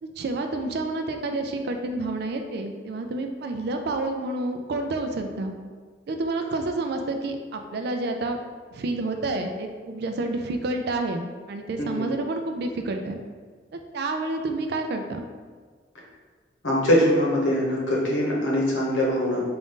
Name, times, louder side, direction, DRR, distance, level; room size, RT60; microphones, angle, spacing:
voice 1, 0.0-5.5 6.1-8.4 8.7-13.2 13.9-15.2, right 2 dB, 60° right, 5 dB, 0.4 m, -29 dB
voice 2, 16.6-19.4, equal, 85° left, -4 dB, 1.0 m, -22 dB
3.7 x 2.5 x 3.6 m, 1.5 s
head